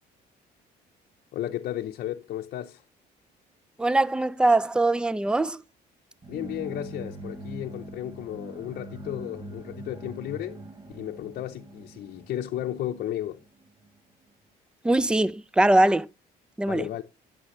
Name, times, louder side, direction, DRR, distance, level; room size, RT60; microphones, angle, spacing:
voice 1, 1.3-2.8 6.3-10.6 10.9-13.4 16.7-17.0, left 12 dB, 60° left, 0.7 m, -34 dB
voice 2, 3.8-5.6 14.8-16.1 16.6-16.9, right 2 dB, 5° right, 0.4 m, -22 dB
sound 1, 6.2-14.0, right 2 dB, 25° right, 1.0 m, -43 dB
11.5 x 6.8 x 3.1 m
cardioid pair, 110°, 17 cm